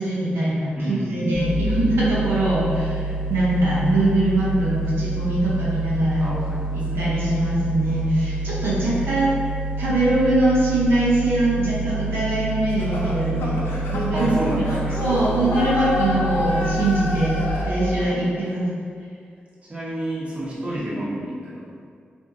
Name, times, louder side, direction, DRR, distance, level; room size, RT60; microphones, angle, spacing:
voice 1, 0.0-6.3 6.7-9.5 9.8-17.4 17.6-18.7, right 1 dB, 85° right, -8 dB, 0.8 m, -22 dB
voice 2, 0.7-1.5 6.2-7.1 14.1-15.0 19.7-21.8, right 1 dB, 30° right, -8 dB, 0.9 m, -29 dB
sound 1, 1.3-17.5, right 2 dB, 25° left, 0.9 m, -28 dB
sound 2, 12.7-18.1, left 2 dB, 85° left, 0.5 m, -29 dB
2.6 x 2.6 x 3.5 m, 2.2 s
cardioid pair, 70°, 4 cm